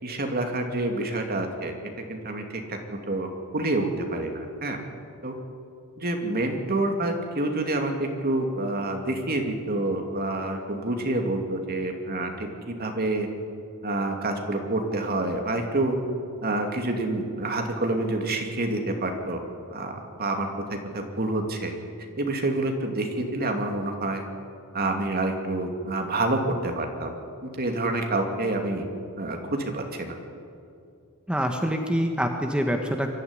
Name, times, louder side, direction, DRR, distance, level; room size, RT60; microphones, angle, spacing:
voice 1, 0.0-1.7 2.1-4.8 5.2-5.3 6.0-13.3 13.8-16.0 16.4-19.4 19.7-21.7 22.2-24.2 24.7-27.1 27.4-28.9 29.2-30.2, right 2 dB, 45° right, 3 dB, 2.7 m, -28 dB
voice 2, 31.3-33.1, equal, 5° right, 3 dB, 1.3 m, -25 dB
24.0 x 13.5 x 9.9 m, 2.5 s
head